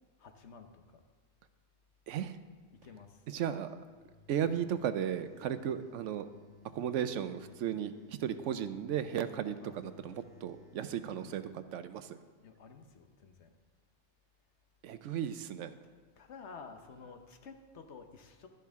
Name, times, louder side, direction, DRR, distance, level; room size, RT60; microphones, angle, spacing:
voice 1, 0.2-1.0 2.7-3.3 9.6-9.8 10.8-11.4 12.4-13.6 16.2-18.5, left 5 dB, 65° left, 6 dB, 1.1 m, -52 dB
voice 2, 2.1-2.4 3.3-3.7 4.3-6.3 6.7-9.6 10.0-12.2 14.8-15.7, right 9 dB, 80° right, 12 dB, 0.9 m, -35 dB
sound 1, 3.9-11.5, left 7 dB, 20° left, 2.1 m, -60 dB
12.0 x 10.0 x 3.6 m, 1.5 s
omnidirectional pair, 1.3 m